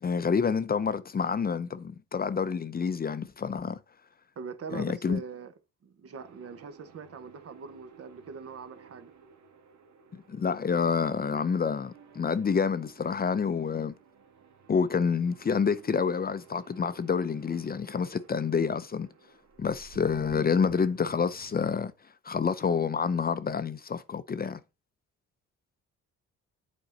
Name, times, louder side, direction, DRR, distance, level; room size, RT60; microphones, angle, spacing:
voice 1, 0.0-3.8 4.7-5.2 10.1-13.9 14.7-19.1 19.6-21.9 22.2-24.6, left 6 dB, 30° left, 0.6 m, -28 dB
voice 2, 4.4-5.5 5.8-9.1, right 5 dB, 50° right, 1.1 m, -42 dB
sound 1, 6.2-21.7, right 6 dB, 65° right, 1.4 m, -55 dB
8.2 x 4.5 x 3.9 m
cardioid pair, 90°, 30 cm